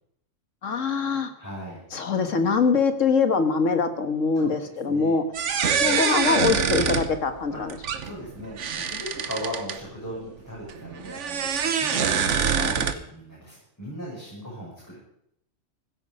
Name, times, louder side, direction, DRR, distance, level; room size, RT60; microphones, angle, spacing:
voice 1, 0.6-1.3 1.9-5.2 5.8-7.8 12.0-12.1, left 5 dB, 75° left, 8 dB, 1.9 m, -23 dB
voice 2, 1.4-1.8 4.3-5.2 5.8-6.0 7.5-15.0, equal, 15° left, -7 dB, 6.4 m, -38 dB
sound 1, 5.3-9.8 10.7-12.9, right 7 dB, 65° right, 1.3 m, -25 dB
15.5 x 13.5 x 5.4 m, 0.75 s
omnidirectional pair, 1.3 m